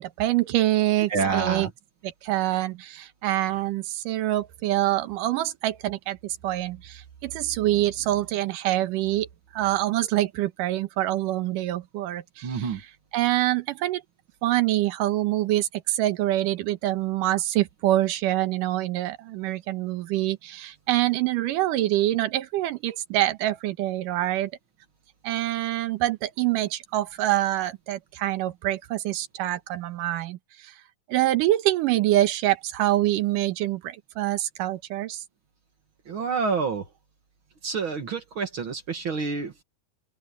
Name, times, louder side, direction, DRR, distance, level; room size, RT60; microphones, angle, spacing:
voice 1, 0.0-1.7 2.0-9.3 9.5-12.8 13.1-14.0 14.4-24.5 25.2-30.7 31.1-35.2, right 15 dB, 75° right, 2.5 m, -25 dB
voice 2, 1.1-1.7 12.4-12.8 36.1-36.8 37.6-39.6, right 5 dB, 45° right, 1.8 m, -28 dB
open air
omnidirectional pair, 4.1 m